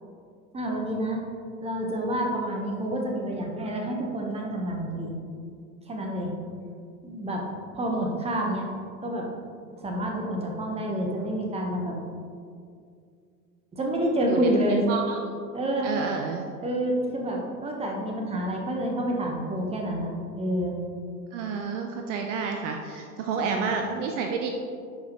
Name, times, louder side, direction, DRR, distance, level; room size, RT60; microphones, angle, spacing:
voice 1, 0.5-1.2 1.6-5.2 5.9-6.3 7.0-7.4 7.7-8.7 9.0-9.2 9.8-12.0 13.7-14.8 15.5-15.9 16.6-20.1 20.4-20.8 23.4-23.7, right 1 dB, 10° right, 1 dB, 1.1 m, -28 dB
voice 2, 14.9-15.2 15.8-16.5 21.3-24.5, right 5 dB, 50° right, 3 dB, 0.7 m, -30 dB
10.5 x 4.9 x 3.0 m, 2.3 s
figure-of-eight pair, 85°, 49 cm